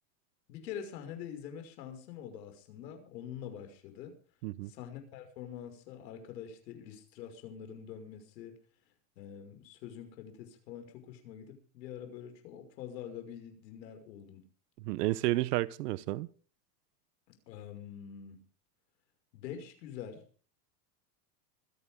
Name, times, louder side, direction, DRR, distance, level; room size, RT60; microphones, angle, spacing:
voice 1, 0.5-4.1 4.6-8.6 9.2-14.4 17.5-18.4 19.3-20.2, left 9 dB, 80° left, 5.9 m, -45 dB
voice 2, 14.8-16.3, right 17 dB, 70° right, 1.1 m, -31 dB
25.5 x 11.0 x 3.7 m
supercardioid pair, 175°, 49 cm